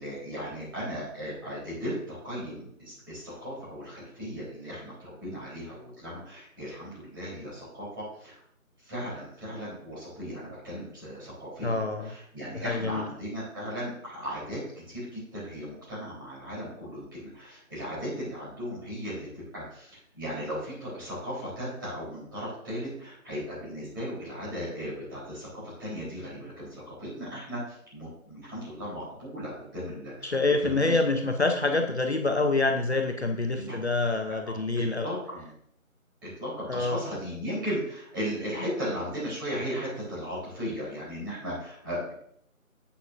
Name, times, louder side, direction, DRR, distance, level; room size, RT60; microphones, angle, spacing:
voice 1, 0.0-8.4 8.8-14.6 14.9-25.5 25.8-30.9 33.5-33.8 34.3-34.4 34.7-35.5 36.4-42.1, equal, 15° right, -9 dB, 3.7 m, -36 dB
voice 2, 11.6-12.1 12.6-13.0 30.2-35.1 36.7-37.0, left 3 dB, 50° left, 5 dB, 0.8 m, -26 dB
9.8 x 8.6 x 2.6 m, 0.66 s
figure-of-eight pair, 165°, 43 cm